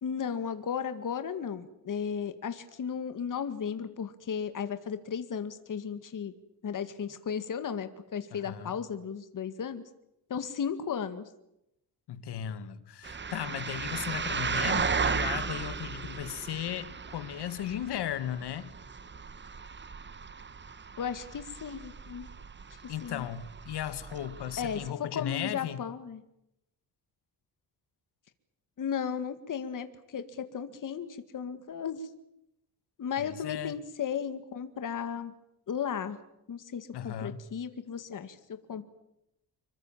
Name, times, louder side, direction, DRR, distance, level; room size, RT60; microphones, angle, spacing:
voice 1, 0.0-6.3 6.6-9.8 10.3-11.3 21.0-22.3 22.8-23.3 24.6-26.2 28.8-32.1 33.0-35.3 35.7-36.2 36.5-38.8, left 7 dB, 50° left, 10 dB, 2.1 m, -35 dB
voice 2, 8.3-8.7 12.1-18.7 22.9-25.8 33.2-33.7 36.9-37.4, left 10 dB, 80° left, 13 dB, 1.8 m, -36 dB
sound 1, 13.0-24.9, right 5 dB, 30° right, 1.1 m, -36 dB
26.0 x 23.0 x 7.4 m, 0.83 s
cardioid pair, 115°, 39 cm